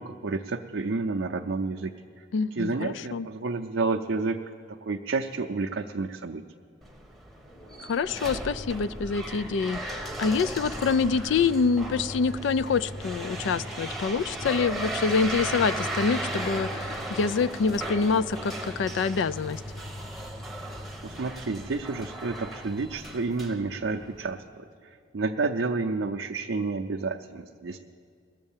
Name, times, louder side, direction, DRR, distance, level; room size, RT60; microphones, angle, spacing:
voice 1, 0.0-2.2 2.5-4.4 4.9-6.4 21.0-27.8, right 3 dB, 80° right, 3 dB, 0.5 m, -30 dB
voice 2, 2.3-3.3 7.8-19.6, left 5 dB, 75° left, 16 dB, 0.3 m, -26 dB
sound 1, 6.8-24.3, right 1 dB, ahead, 0.9 m, -36 dB
sound 2, 7.4-18.6, equal, 50° left, 4.7 m, -47 dB
19.0 x 7.6 x 7.3 m, 2.3 s
head